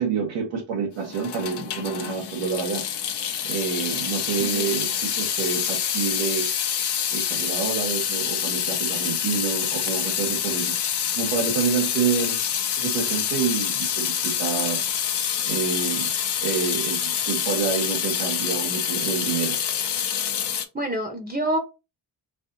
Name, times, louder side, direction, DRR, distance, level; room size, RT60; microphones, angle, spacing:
voice 1, 0.0-2.8 3.4-6.8 7.1-12.4 12.8-15.1 15.4-16.1 16.4-19.6, right 6 dB, 90° right, 1.0 m, -28 dB
Water tap faucet / Sink (filling or washing) / Drip, 1.0-20.6, left 8 dB, 65° left, 0.8 m, -26 dB
voice 2, 4.4-4.7 20.7-21.6, right 1 dB, 20° right, 0.8 m, -27 dB
4.6 x 2.7 x 2.5 m
cardioid pair, 80°, 44 cm